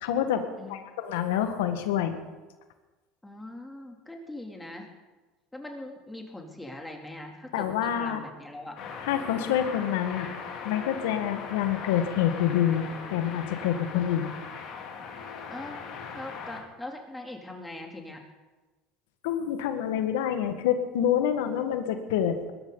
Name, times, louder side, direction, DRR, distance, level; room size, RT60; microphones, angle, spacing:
voice 1, 0.0-2.2 7.5-8.2 9.1-10.3 10.6-14.3 19.2-22.5, left 10 dB, 85° left, 8 dB, 1.5 m, -27 dB
voice 2, 3.2-4.9 5.5-8.8 15.5-15.9 16.1-18.2, left 1 dB, 10° left, 2 dB, 2.7 m, -41 dB
sound 1, 8.8-16.6, left 5 dB, 60° left, 2.8 m, -39 dB
20.5 x 12.0 x 3.9 m, 1.2 s
supercardioid pair, 95°, 0 cm